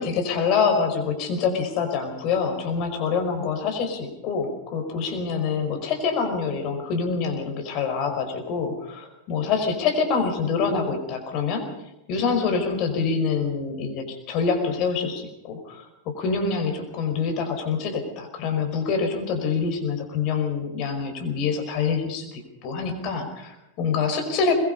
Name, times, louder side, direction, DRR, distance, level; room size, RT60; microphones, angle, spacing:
voice 1, 0.0-11.7 12.1-24.5, left 5 dB, 40° left, 6 dB, 5.2 m, -26 dB
22.0 x 22.0 x 5.5 m, 0.93 s
figure-of-eight pair, 90°, 0 cm